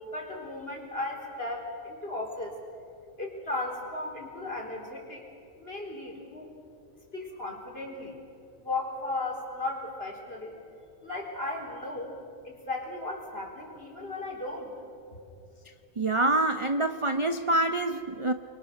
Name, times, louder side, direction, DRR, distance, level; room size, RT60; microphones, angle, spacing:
voice 1, 0.0-2.6 3.2-5.2 5.6-6.5 7.1-8.2 8.6-10.6 11.0-12.2 12.4-14.7, left 2 dB, 45° left, -1 dB, 4.3 m, -36 dB
voice 2, 16.0-18.3, right 2 dB, 30° right, 8 dB, 0.6 m, -26 dB
29.5 x 23.0 x 6.6 m, 2.6 s
omnidirectional pair, 1.4 m